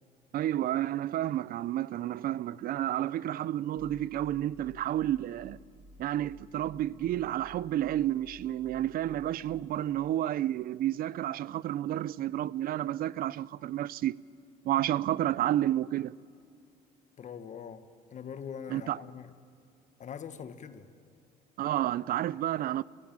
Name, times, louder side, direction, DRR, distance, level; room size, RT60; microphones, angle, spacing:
voice 1, 0.3-5.6 6.0-14.2 14.6-16.1 18.7-19.0 21.6-22.8, right 13 dB, 60° right, 0.5 m, -30 dB
sound 1, 3.8-9.6, equal, 10° right, 3.0 m, -55 dB
voice 2, 17.2-17.9 18.1-19.3 20.0-20.9, left 7 dB, 45° left, 1.4 m, -42 dB
28.0 x 16.0 x 8.7 m
cardioid pair, 110°, 17 cm